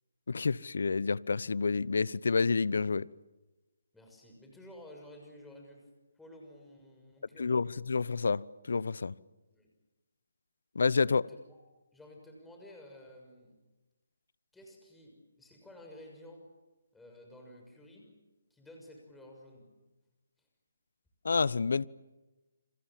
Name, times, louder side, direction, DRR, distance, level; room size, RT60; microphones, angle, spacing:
voice 1, 0.3-3.1 7.4-8.4 8.7-9.1 10.7-11.2 21.2-21.9, left 4 dB, 70° left, 0.9 m, -28 dB
voice 2, 3.9-5.9 6.2-7.8 9.5-9.7 11.1-11.4 11.9-13.6 14.5-16.5 16.9-18.1 18.5-19.7, left 1 dB, 5° left, 6.4 m, -53 dB
30.0 x 26.5 x 7.5 m
figure-of-eight pair, 150°, 0 cm